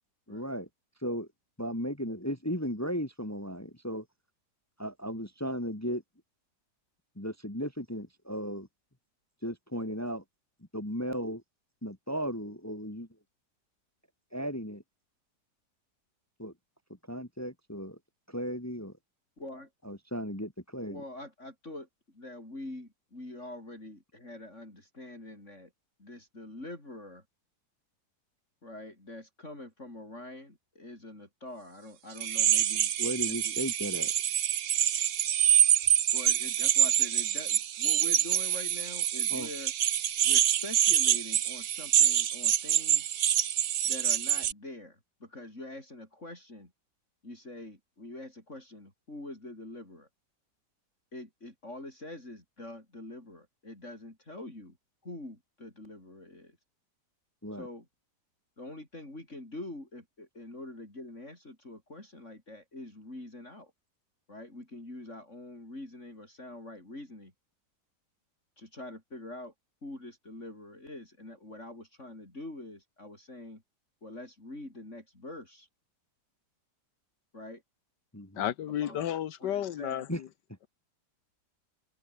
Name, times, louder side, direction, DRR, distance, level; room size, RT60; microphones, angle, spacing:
voice 1, 0.3-0.7 1.0-1.3 1.6-4.1 4.8-6.0 7.2-8.7 9.4-10.2 10.7-11.4 11.8-13.1 14.3-14.8 16.4-16.5 17.1-18.0 18.3-18.9 19.8-21.0 33.0-34.1 39.3-39.5 57.4-57.7 78.1-78.4 80.1-80.2, equal, 10° left, 2.2 m, -35 dB
voice 2, 19.4-19.7 20.9-25.7 26.0-27.2 28.6-32.9 33.3-33.6 36.1-39.7 40.2-43.2 43.9-46.7 47.2-50.1 51.1-54.8 55.0-56.6 57.5-57.9 58.6-63.7 64.3-67.3 68.6-69.5 69.8-73.6 74.0-75.7 77.3-77.6 78.7-79.0 79.4-80.0, left 1 dB, 40° left, 6.9 m, -45 dB
Dentist-drill-fine, 32.2-44.5, right 10 dB, 55° right, 1.0 m, -26 dB
voice 3, 78.3-80.3, left 10 dB, 85° left, 1.6 m, -32 dB
omnidirectional pair, 1.8 m